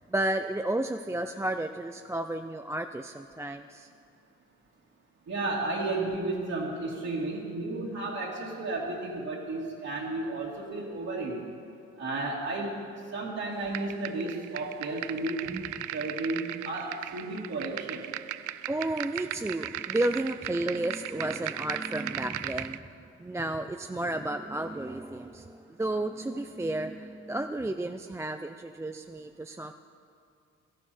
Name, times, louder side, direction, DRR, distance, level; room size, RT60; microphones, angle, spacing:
voice 1, 0.1-3.9 15.5-15.6 18.7-22.9 23.2-29.7, right 1 dB, 10° right, 7 dB, 0.4 m, -32 dB
voice 2, 5.3-11.5 12.0-12.7 13.1-15.4 15.9-18.0, right 2 dB, 60° right, -6 dB, 2.6 m, -33 dB
sound 1, 13.7-22.8, right 13 dB, 80° right, 0.5 m, -38 dB
16.5 x 13.5 x 4.3 m, 2.5 s
cardioid pair, 90°, 30 cm